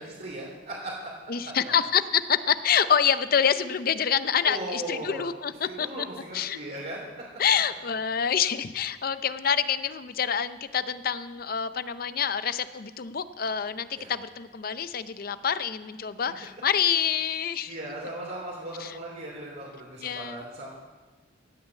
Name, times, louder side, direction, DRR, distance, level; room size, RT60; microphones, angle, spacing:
voice 1, 0.0-1.7 4.4-5.2 5.6-7.1 14.0-14.1 17.7-20.7, right 1 dB, 55° right, -6 dB, 3.2 m, -38 dB
voice 2, 1.3-6.1 6.3-6.6 7.4-17.7 18.8-19.0 20.0-20.4, left 8 dB, 50° left, 13 dB, 0.5 m, -27 dB
15.0 x 6.5 x 8.3 m, 1.3 s
head